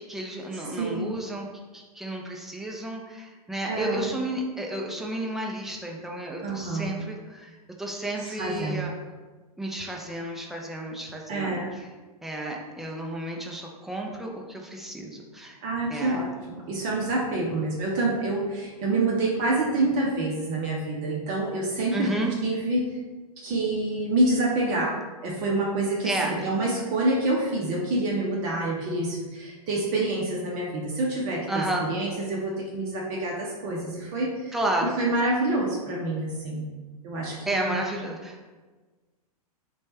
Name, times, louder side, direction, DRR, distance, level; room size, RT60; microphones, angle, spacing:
voice 1, 0.0-1.5 1.7-8.9 9.6-11.9 12.2-15.6 15.9-16.2 21.9-22.3 26.0-26.3 31.5-31.9 34.5-34.9 37.5-38.5, right 1 dB, ahead, -1 dB, 0.4 m, -32 dB
voice 2, 0.5-1.1 3.7-4.1 6.4-6.9 8.2-8.8 11.3-11.7 15.6-22.1 22.4-22.8 23.4-34.6 34.8-36.7 37.0-37.7, right 2 dB, 40° right, -3 dB, 0.7 m, -27 dB
3.1 x 2.3 x 4.1 m, 1.3 s
hypercardioid pair, 110°, 20 cm